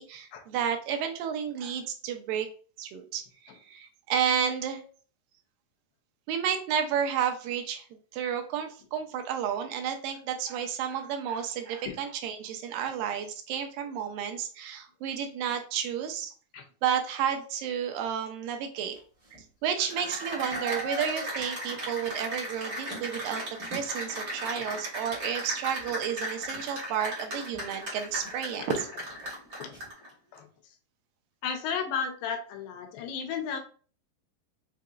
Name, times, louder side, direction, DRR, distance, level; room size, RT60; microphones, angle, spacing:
voice 1, 0.0-2.5 2.8-4.8 6.3-7.9 8.1-16.3 16.8-19.0 19.3-23.4 23.7-28.9, right 8 dB, 80° right, 5 dB, 2.2 m, -31 dB
sound 1, 18.9-19.6 19.8-19.9 20.2-22.5 22.8-24.0 24.6-25.5 25.8-27.2 27.5-28.8 29.1-29.9, right 1 dB, 30° right, 1.7 m, -50 dB
Cheering / Applause, 19.7-30.1, right 1 dB, 55° right, 1.0 m, -36 dB
voice 2, 31.4-33.6, left 6 dB, 85° left, 5 dB, 2.5 m, -33 dB
5.9 x 2.8 x 2.4 m, 0.41 s
omnidirectional pair, 4.1 m